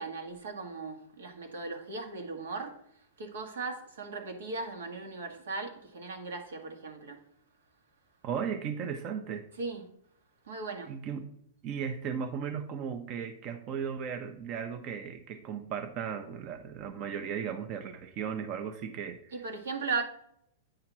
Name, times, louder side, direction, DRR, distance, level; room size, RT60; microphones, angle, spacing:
voice 1, 0.0-2.8 3.2-7.2 9.6-9.9 10.5-10.9 19.3-20.0, right 4 dB, 90° right, 1.5 m, -37 dB
voice 2, 8.2-9.5 10.8-11.3 11.6-19.4, right 7 dB, 35° right, 0.6 m, -36 dB
8.7 x 2.9 x 5.9 m
hypercardioid pair, 145°, 0 cm